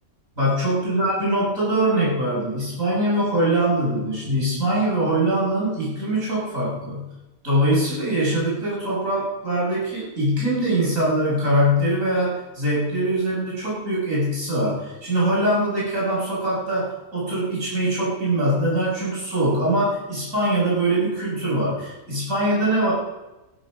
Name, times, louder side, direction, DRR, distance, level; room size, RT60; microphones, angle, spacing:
voice 1, 0.4-7.1 7.4-22.9, right 1 dB, 65° right, -6 dB, 7.5 m, -22 dB
14.5 x 14.0 x 6.5 m, 1.0 s
omnidirectional pair, 1.5 m